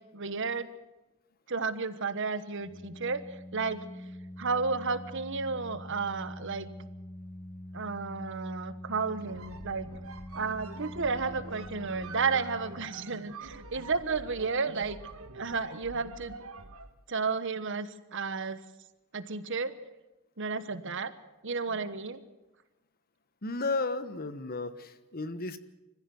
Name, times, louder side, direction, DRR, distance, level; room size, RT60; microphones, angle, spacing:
voice 1, 0.1-0.7 1.5-3.2 3.5-3.8 4.4-6.7 7.7-9.9 10.3-15.0 15.3-16.3 17.1-18.6 19.1-19.7 20.4-21.1 21.4-22.2, right 4 dB, 60° right, 12 dB, 1.2 m, -32 dB
Organ, 2.5-13.3, left 1 dB, 15° left, 7.2 m, -45 dB
sound 1, 9.2-17.0, right 3 dB, 75° right, 1.4 m, -46 dB
voice 2, 23.4-25.6, left 3 dB, 45° left, 12 dB, 1.1 m, -33 dB
25.0 x 15.0 x 7.8 m, 1.0 s
head